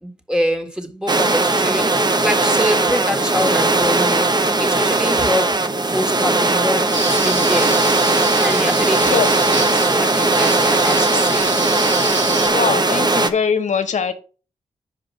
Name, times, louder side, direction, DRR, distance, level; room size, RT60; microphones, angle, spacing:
voice 1, 0.0-7.8 8.3-11.5, equal, 5° right, 1.7 m, -25 dB
sound 1, 1.1-13.3, right 2 dB, 30° right, 0.9 m, -18 dB
sound 2, 6.9-12.5, right 2 dB, 60° right, 2.8 m, -28 dB
voice 2, 12.5-14.1, left 6 dB, 65° left, 0.9 m, -21 dB
5.1 x 4.9 x 6.0 m
supercardioid pair, 45°, 13 cm